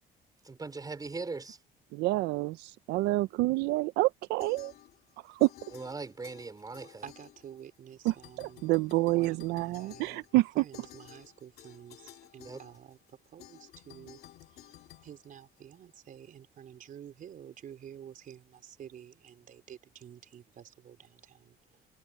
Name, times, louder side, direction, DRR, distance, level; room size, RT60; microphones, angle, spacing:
voice 1, 0.4-1.6 5.7-7.1 12.4-12.6, right 3 dB, 20° right, 4.7 m, -40 dB
voice 2, 1.9-4.7 5.2-5.5 8.0-10.6, right 20 dB, 90° right, 0.5 m, -28 dB
sound 1, 4.4-5.1 5.4-7.8 8.1-15.9, left 12 dB, 70° left, 2.6 m, -54 dB
voice 3, 6.8-8.7 9.0-10.2 10.5-14.2 14.5-21.8, right 9 dB, 55° right, 4.0 m, -50 dB
cardioid pair, 110°, 17 cm